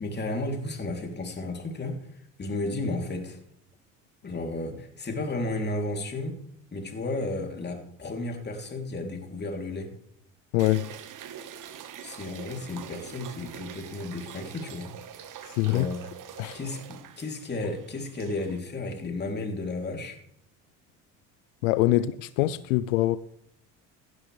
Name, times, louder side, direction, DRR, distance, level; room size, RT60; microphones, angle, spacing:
voice 1, 0.0-3.4 4.2-6.4 6.7-10.0 12.0-14.9 15.7-16.0 16.5-20.2 21.9-22.0, left 2 dB, 25° left, 3.3 m, -33 dB
voice 2, 10.5-10.9 15.4-15.9 16.4-16.6 21.6-23.2, left 16 dB, 80° left, 0.6 m, -24 dB
sound 1, 10.6-18.6, right 9 dB, 55° right, 1.6 m, -44 dB
16.5 x 11.5 x 3.4 m
hypercardioid pair, 75°, 38 cm